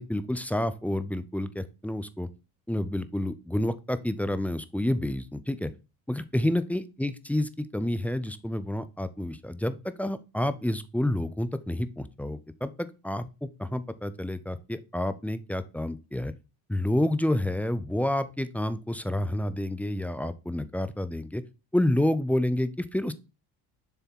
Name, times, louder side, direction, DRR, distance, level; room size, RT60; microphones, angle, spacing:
voice 1, 0.0-2.3 2.7-5.7 6.1-16.3 16.7-21.4 21.7-23.1, left 1 dB, 5° left, 13 dB, 0.4 m, -29 dB
6.9 x 3.5 x 4.3 m, 0.29 s
supercardioid pair, 90°, 41 cm